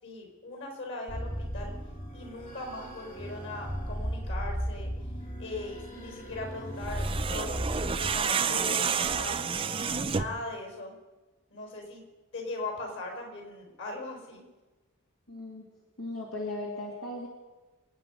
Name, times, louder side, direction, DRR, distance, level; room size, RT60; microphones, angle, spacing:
voice 1, 0.0-1.7 2.1-4.9 5.4-9.4 10.0-10.9 11.5-12.0 12.3-14.4, left 2 dB, 55° left, 2 dB, 4.6 m, -39 dB
sound 1, 1.1-8.2, equal, 35° left, 2.8 m, -36 dB
sound 2, 6.8-10.4, right 6 dB, 25° right, 0.5 m, -29 dB
voice 2, 15.3-15.7 16.0-17.3, left 2 dB, 75° left, -2 dB, 2.7 m, -37 dB
27.5 x 9.6 x 5.4 m, 1.2 s
head